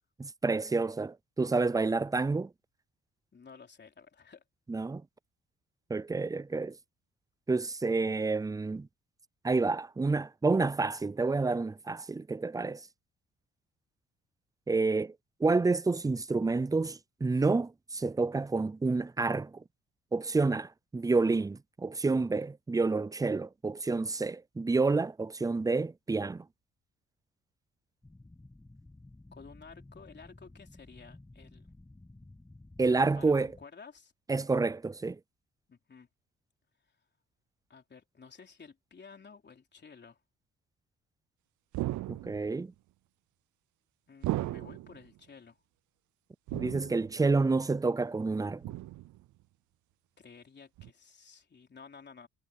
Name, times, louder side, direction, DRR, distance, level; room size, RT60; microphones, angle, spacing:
voice 1, 0.2-2.5 4.7-5.0 5.9-6.8 7.5-8.9 9.4-12.8 14.7-15.1 15.4-19.5 20.1-26.4 32.8-33.5 34.3-35.2 42.1-42.7 46.5-48.6, right 3 dB, 10° right, 0.4 m, -29 dB
voice 2, 3.3-4.4 29.3-31.7 33.1-34.1 35.7-36.1 37.7-40.2 44.1-45.6 50.2-52.3, left 5 dB, 35° left, 3.6 m, -53 dB
sound 1, 28.0-33.7, left 2 dB, 10° left, 1.6 m, -54 dB
sound 2, 41.7-42.6 44.2-45.0 46.5-47.2 48.6-49.2 50.8-50.9, right 16 dB, 75° right, 0.6 m, -36 dB
cardioid pair, 90°, 30 cm